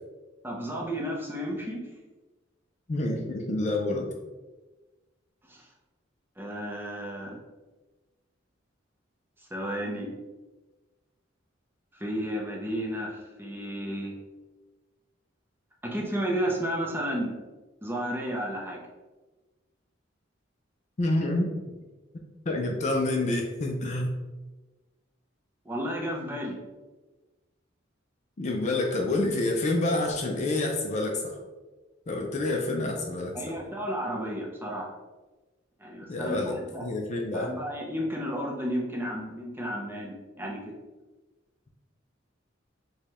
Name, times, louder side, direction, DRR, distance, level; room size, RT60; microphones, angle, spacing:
voice 1, 0.4-1.8 5.5-5.6 6.4-7.4 9.5-10.1 12.0-14.2 15.8-17.3 17.8-18.8 25.6-26.6 33.3-34.9 35.8-36.9 37.3-40.6, equal, 10° right, -3 dB, 0.6 m, -32 dB
voice 2, 2.9-4.1 21.0-21.5 22.5-24.1 28.4-31.4 32.1-33.5 36.1-37.5, left 2 dB, 35° left, 1 dB, 0.4 m, -28 dB
4.7 x 2.3 x 2.9 m, 1.2 s
head